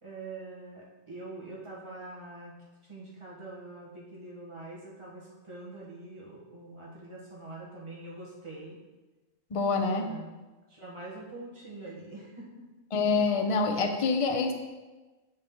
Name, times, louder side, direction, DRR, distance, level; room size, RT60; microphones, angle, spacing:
voice 1, 0.0-2.6 2.9-8.8 9.8-10.4 10.7-12.7, right 2 dB, 20° right, -5 dB, 1.6 m, -44 dB
voice 2, 9.5-10.1 12.9-14.5, left 4 dB, 40° left, 5 dB, 0.5 m, -26 dB
6.5 x 5.5 x 3.8 m, 1.2 s
omnidirectional pair, 1.4 m